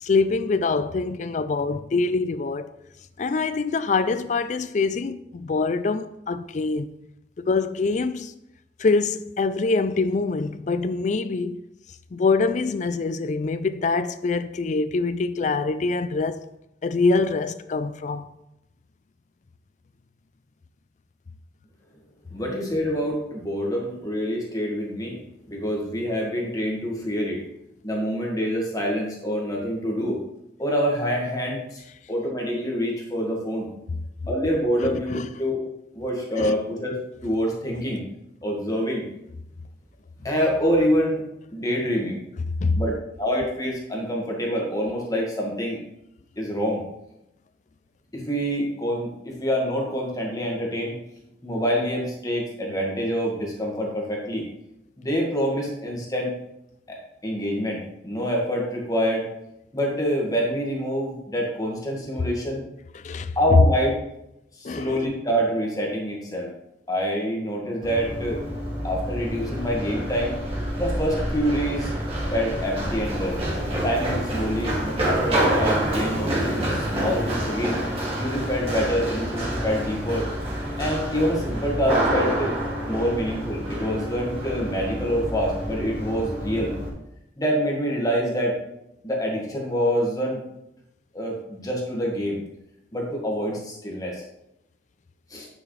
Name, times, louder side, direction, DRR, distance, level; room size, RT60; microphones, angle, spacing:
voice 1, 0.0-2.7 3.2-6.9 7.4-8.4 8.8-11.6 12.1-16.5 16.8-18.3 33.9-34.0 34.8-35.3 36.4-36.5 42.6-42.8 62.9-63.6 64.6-65.0, left 4 dB, 45° left, 0.4 m, -24 dB
voice 2, 22.3-25.2 25.5-27.4 27.8-30.2 30.6-31.8 32.1-33.7 34.3-35.6 36.0-37.0 37.2-38.1 38.4-39.1 40.2-41.2 41.5-42.2 42.7-42.9 43.2-45.8 46.4-46.8 48.1-51.0 51.4-54.5 55.0-56.3 56.9-57.0 57.2-59.3 59.7-62.6 63.4-64.0 64.6-66.5 66.9-68.4 68.8-70.3 70.8-71.9 72.3-73.4 73.8-76.6 76.9-77.8 78.1-80.3 80.8-82.5 82.8-86.7 87.4-88.6 89.0-90.4 91.1-92.4 92.9-94.2 95.3-95.5, equal, 20° left, 1.7 m, -26 dB
Run, 67.8-86.9, right 1 dB, 35° right, 2.2 m, -28 dB
9.4 x 6.2 x 3.3 m
head